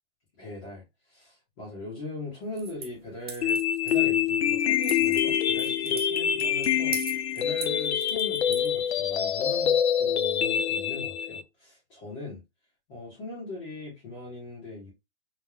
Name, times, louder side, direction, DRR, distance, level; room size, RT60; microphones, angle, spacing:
voice 1, 0.4-7.0 7.3-12.4 12.9-14.9, left 2 dB, 30° left, 2.1 m, -40 dB
sound 1, 2.4-9.2, right 6 dB, 25° right, 0.4 m, -42 dB
sound 2, 3.4-11.4, left 9 dB, 70° left, 0.6 m, -25 dB
3.8 x 3.6 x 2.5 m
hypercardioid pair, 155°, 34 cm